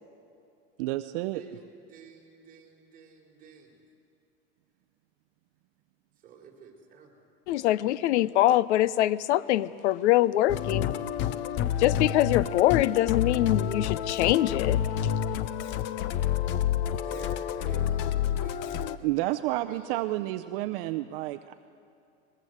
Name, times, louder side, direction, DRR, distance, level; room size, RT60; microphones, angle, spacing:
voice 1, 0.8-1.4 19.0-21.5, right 16 dB, 55° right, 0.6 m, -30 dB
voice 2, 1.3-3.8 6.2-7.1 17.0-19.0 19.5-20.2, right 6 dB, 25° right, 4.2 m, -50 dB
voice 3, 7.5-10.9 11.8-14.8, left 14 dB, 80° left, 0.7 m, -24 dB
Musical instrument, 10.5-19.0, left 10 dB, 35° left, 0.6 m, -29 dB
22.5 x 21.0 x 7.9 m
supercardioid pair, 155°, 34 cm